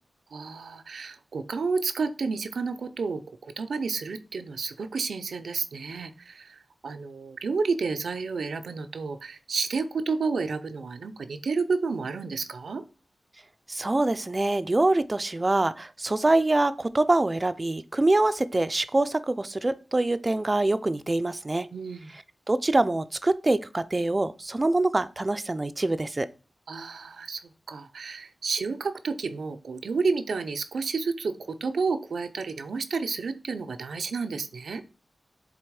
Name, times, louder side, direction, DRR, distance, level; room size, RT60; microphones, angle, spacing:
voice 1, 0.3-12.8 21.7-22.1 26.7-34.8, right 4 dB, 90° right, 8 dB, 0.6 m, -31 dB
voice 2, 13.7-21.7 22.5-26.3, right 2 dB, 30° right, 11 dB, 0.4 m, -24 dB
7.6 x 3.4 x 4.7 m, 0.34 s
wide cardioid pair, 90°, 0 cm